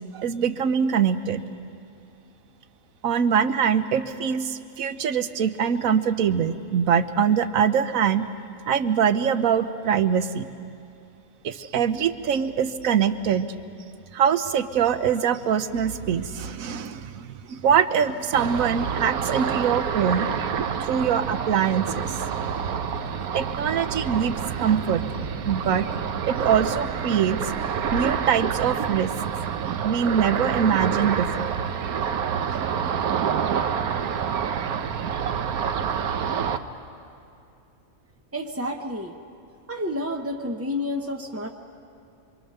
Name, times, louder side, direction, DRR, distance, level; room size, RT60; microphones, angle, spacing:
voice 1, 0.1-1.4 3.0-8.3 8.7-10.5 11.4-13.5 14.1-20.3 20.8-22.1 23.3-25.0 25.5-25.9 26.3-27.5 27.9-29.1 29.8-31.5, right 7 dB, 70° right, 11 dB, 1.2 m, -23 dB
Ocean, 18.3-36.6, right 7 dB, 90° right, 1.3 m, -27 dB
voice 2, 38.3-39.2 39.7-41.5, left 1 dB, 15° right, 2 dB, 0.5 m, -30 dB
26.5 x 24.0 x 6.7 m, 2.5 s
omnidirectional pair, 1.5 m